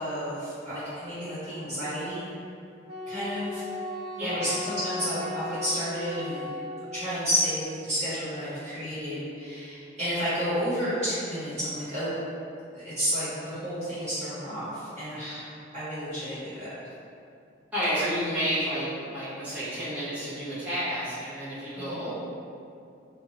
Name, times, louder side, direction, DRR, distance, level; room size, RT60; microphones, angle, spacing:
voice 1, 0.0-2.2 3.1-3.6 4.2-6.5 6.9-12.1 12.7-16.7 21.7-22.0, equal, 35° right, -15 dB, 1.3 m, -31 dB
Wind instrument woodwind instrument, 2.9-7.1, left 1 dB, 55° right, 0.4 m, -36 dB
voice 2, 4.2-4.5 17.7-22.2, equal, 10° right, -13 dB, 1.0 m, -30 dB
2.7 x 2.5 x 2.8 m, 2.5 s
head